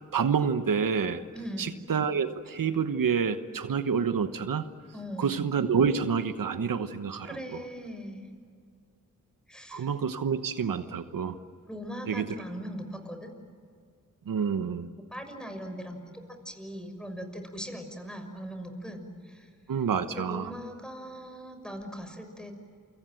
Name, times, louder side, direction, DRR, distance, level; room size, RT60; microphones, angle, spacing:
voice 1, 0.1-1.2 1.6-4.7 5.2-7.6 9.7-11.4 12.1-12.2 14.3-14.9 19.7-20.5, right 6 dB, 85° right, 10 dB, 1.2 m, -28 dB
voice 2, 1.3-1.7 4.9-5.3 7.2-8.3 9.5-9.9 11.7-13.3 15.0-16.0 16.4-19.5 20.1-22.5, equal, ahead, 6 dB, 6.3 m, -40 dB
28.5 x 25.0 x 7.8 m, 2.2 s
cardioid pair, 55°, 33 cm